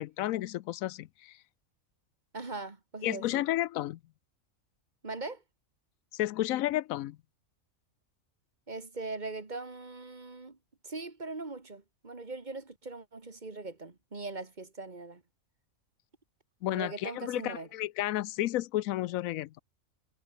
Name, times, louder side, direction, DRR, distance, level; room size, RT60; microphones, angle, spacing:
voice 1, 0.0-1.4 3.0-4.0 6.1-7.2 16.6-19.6, left 15 dB, 90° left, 1.0 m, -32 dB
voice 2, 2.3-3.5 5.0-5.4 8.7-10.6 10.8-15.2 16.7-17.7, right 3 dB, 35° right, 1.9 m, -40 dB
omnidirectional pair, 1.4 m